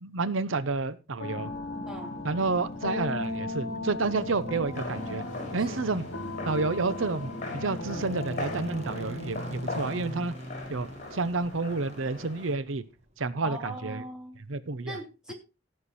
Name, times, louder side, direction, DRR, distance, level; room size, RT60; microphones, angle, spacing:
voice 1, 0.0-1.5 2.2-5.2 5.5-6.0 6.4-10.3 10.7-12.8 13.2-14.0 14.5-15.0, right 3 dB, 85° right, 15 dB, 0.8 m, -30 dB
sound 1, 1.2-10.3, left 2 dB, 75° left, 1.4 m, -37 dB
sound 2, 1.5-13.7, equal, 35° right, 1.4 m, -45 dB
voice 2, 1.9-2.2 5.6-5.8 13.4-14.4 14.9-15.3, equal, 5° right, 1 dB, 2.8 m, -40 dB
sound 3, 4.7-12.6, left 2 dB, 40° left, 3.8 m, -40 dB
16.5 x 6.6 x 4.2 m, 0.28 s
head